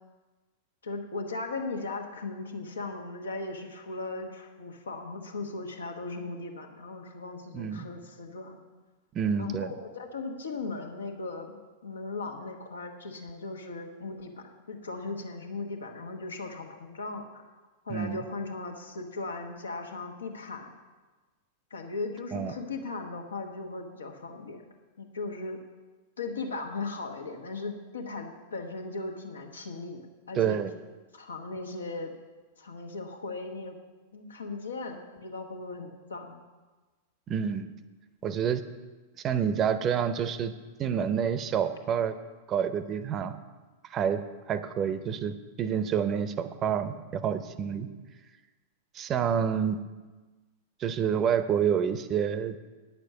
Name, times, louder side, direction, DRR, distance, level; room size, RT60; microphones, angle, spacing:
voice 1, 0.8-8.6 9.4-14.3 14.7-17.5 17.8-20.7 21.7-24.7 25.0-25.6 26.2-30.0 30.3-30.6 31.1-32.1 32.6-33.8 34.1-36.4 47.6-48.0, left 3 dB, 70° left, 3 dB, 1.3 m, -37 dB
voice 2, 7.5-7.9 9.1-9.7 17.9-18.2 22.3-22.5 30.3-30.7 37.3-37.7 38.2-38.6 39.2-40.5 40.8-42.1 42.5-43.4 43.9-44.2 44.5-47.9 48.9-49.8 50.8-52.6, right 8 dB, 30° right, 12 dB, 0.7 m, -28 dB
9.6 x 6.8 x 7.9 m, 1.3 s
figure-of-eight pair, 95°, 0 cm